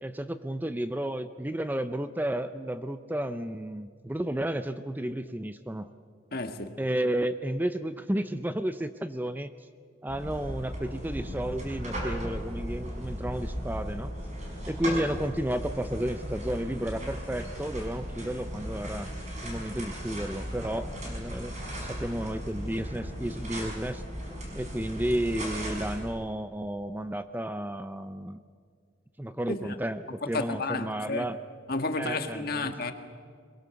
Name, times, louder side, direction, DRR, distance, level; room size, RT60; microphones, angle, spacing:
voice 1, 0.0-5.9 6.8-9.5 10.0-14.1 14.7-19.1 19.4-24.0 24.5-28.4 29.2-31.4 32.0-32.7, right 1 dB, 10° right, 10 dB, 0.5 m, -32 dB
voice 2, 6.3-6.7 29.5-29.6 30.3-31.2 31.7-32.9, left 3 dB, 50° left, 7 dB, 1.6 m, -31 dB
sound 1, 10.1-26.0, equal, 35° right, 5.8 m, -36 dB
23.0 x 22.0 x 7.0 m, 2.1 s
head